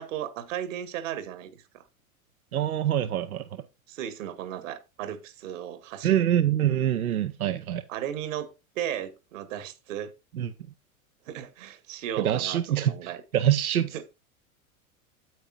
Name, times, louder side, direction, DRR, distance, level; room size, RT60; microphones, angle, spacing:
voice 1, 0.0-1.8 3.9-6.2 7.9-10.1 11.3-12.6 12.9-13.2 13.9-14.0, right 10 dB, 60° right, 1.6 m, -35 dB
voice 2, 2.5-3.6 6.0-7.8 10.3-10.5 12.2-14.0, right 11 dB, 75° right, 0.8 m, -25 dB
9.3 x 8.9 x 2.3 m
figure-of-eight pair, 90°, 43 cm